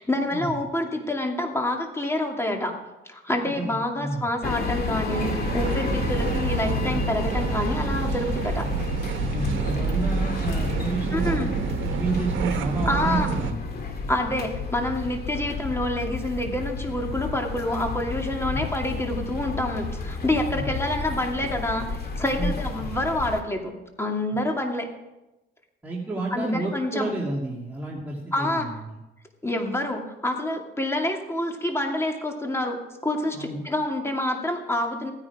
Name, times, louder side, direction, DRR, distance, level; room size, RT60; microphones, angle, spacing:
voice 1, 0.0-2.7 3.1-8.7 11.1-11.5 12.9-13.3 14.1-23.7 24.0-24.9 26.3-27.1 28.3-28.7 29.4-32.8 33.0-35.1, left 1 dB, 15° left, 2 dB, 2.5 m, -27 dB
voice 2, 3.4-4.3 9.3-13.6 18.5-18.6 20.5-20.7 22.4-22.9 25.8-28.7 33.3-33.6, right 3 dB, 10° right, -5 dB, 2.7 m, -30 dB
sound 1, 4.4-23.4, left 4 dB, 50° left, 2.2 m, -31 dB
sound 2, 5.1-13.5, right 7 dB, 75° right, 1.2 m, -29 dB
16.0 x 9.7 x 4.9 m, 0.99 s
cardioid pair, 90°, 20 cm